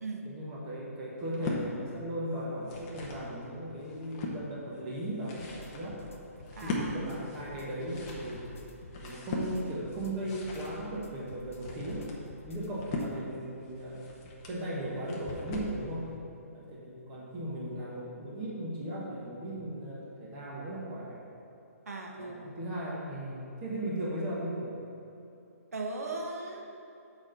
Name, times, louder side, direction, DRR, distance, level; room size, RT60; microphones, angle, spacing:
voice 1, 0.2-6.0 6.4-8.5 9.0-12.1 12.4-14.0 14.5-16.1 16.5-21.2 22.2-24.8, right 1 dB, 15° right, -6 dB, 1.3 m, -37 dB
sound 1, 1.2-1.6 2.4-3.3 3.8-4.4 5.0-15.8, left 2 dB, 20° left, 0.8 m, -40 dB
sound 2, 5.4-13.1, left 2 dB, 55° left, 1.0 m, -51 dB
voice 2, 6.6-6.9 21.9-22.5 25.7-26.6, right 3 dB, 75° right, 1 dB, 1.2 m, -38 dB
6.5 x 4.8 x 6.7 m, 2.8 s
hypercardioid pair, 170°, 8 cm